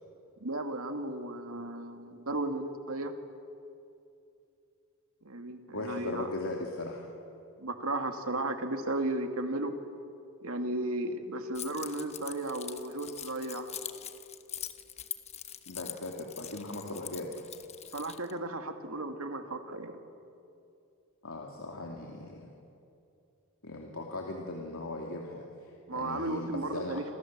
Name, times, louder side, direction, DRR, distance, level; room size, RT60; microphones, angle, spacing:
voice 1, 0.4-3.1 5.2-6.3 7.6-9.7 10.4-13.7 17.9-20.0 25.9-27.0, right 2 dB, 75° right, 6 dB, 2.4 m, -35 dB
voice 2, 5.7-7.1 15.7-17.5 21.2-22.5 23.6-27.0, left 2 dB, 75° left, 0 dB, 2.8 m, -38 dB
Keys jangling, 11.5-18.3, left 10 dB, 30° left, 1.1 m, -43 dB
28.5 x 27.0 x 7.5 m, 2.6 s
head